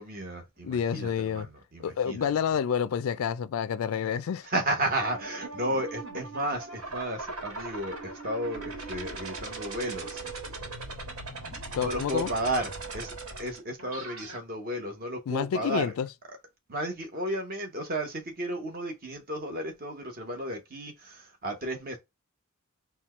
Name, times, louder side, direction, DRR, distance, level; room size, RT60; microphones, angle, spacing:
voice 1, 0.0-2.3 4.4-10.2 11.7-13.1 13.4-15.9 16.3-16.4 16.7-22.0, right 1 dB, 45° right, 1.1 m, -33 dB
voice 2, 0.6-1.5 1.8-4.5 11.7-12.3 15.3-16.1, left 7 dB, 75° left, 0.3 m, -29 dB
sound 1, 5.0-14.4, right 3 dB, 85° right, 1.4 m, -39 dB
4.3 x 2.3 x 4.3 m
head